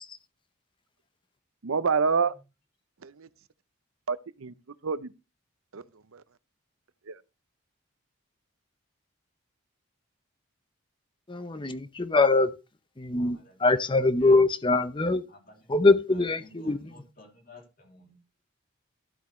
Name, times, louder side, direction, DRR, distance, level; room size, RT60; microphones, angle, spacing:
voice 1, 1.6-2.4 3.0-3.3 4.1-4.5 4.8-5.1 5.7-6.2 7.1-7.2, right 5 dB, 75° right, 0.6 m, -28 dB
voice 2, 11.3-12.5 13.0-15.2 15.7-16.8, left 3 dB, 25° left, 0.7 m, -23 dB
voice 3, 13.1-13.7 14.2-14.4 15.3-15.7 16.1-18.1, left 1 dB, 45° left, 2.9 m, -52 dB
12.0 x 8.2 x 3.1 m
head